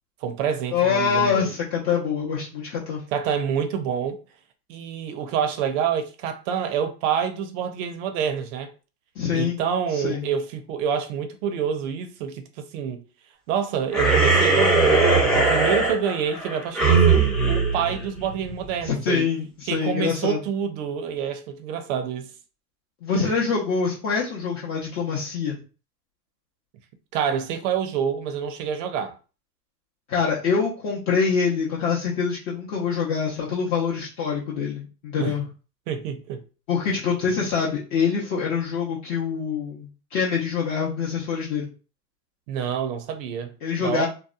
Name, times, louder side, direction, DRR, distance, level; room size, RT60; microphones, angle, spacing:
voice 1, 0.2-1.5 3.1-4.2 4.7-8.7 9.3-13.0 13.5-19.3 19.7-22.3 23.1-23.2 27.1-29.2 35.2-35.4 35.9-36.4 42.5-43.5 43.8-44.1, right 7 dB, 50° right, 0.5 m, -27 dB
voice 2, 0.7-3.0 9.2-9.6 9.9-10.3 18.8-20.4 23.0-25.6 30.1-35.5 36.7-41.7 43.6-44.1, left 6 dB, 40° left, 0.7 m, -25 dB
sound 1, 13.9-18.6, right 4 dB, ahead, 0.4 m, -20 dB
2.7 x 2.1 x 2.4 m
hypercardioid pair, 115°, 50 cm